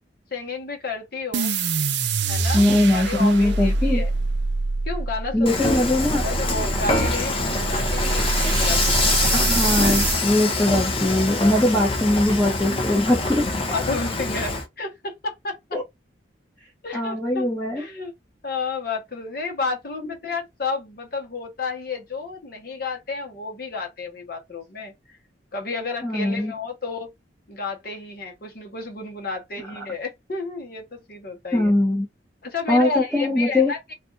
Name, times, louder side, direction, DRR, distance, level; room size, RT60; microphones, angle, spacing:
voice 1, 0.3-1.5 2.3-4.1 4.8-5.9 6.2-9.4 11.2-11.5 13.7-15.8 16.8-17.5 17.7-18.1 18.4-25.2 25.5-27.1 27.5-31.7 32.4-33.9, left 4 dB, 55° left, 1.0 m, -31 dB
sound 1, 1.3-10.2, right 4 dB, 75° right, 0.6 m, -25 dB
voice 2, 2.5-4.0 5.3-6.2 9.5-13.4 15.7-15.8 16.9-17.8 20.0-20.1 26.0-26.5 31.5-32.1 32.7-33.7, left 1 dB, 10° left, 0.9 m, -21 dB
Dishes pots and pans / Frying (food), 5.5-14.6, left 3 dB, 30° left, 0.6 m, -25 dB
2.5 x 2.4 x 3.9 m
head